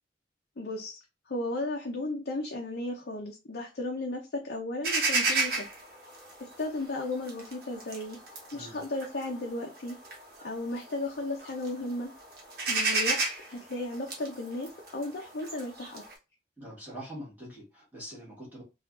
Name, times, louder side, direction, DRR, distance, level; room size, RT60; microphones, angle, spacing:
voice 1, 0.6-1.0 1.3-5.6 6.6-8.2 8.5-10.0 10.4-12.1 12.7-13.2 13.5-16.0, left 2 dB, 60° left, 0.6 m, -35 dB
sound 1, 4.8-11.1 11.4-11.9 12.2-16.1, right 3 dB, 55° right, 1.1 m, -31 dB
voice 2, 16.6-18.6, equal, 10° right, 1.4 m, -44 dB
3.7 x 2.5 x 2.4 m
head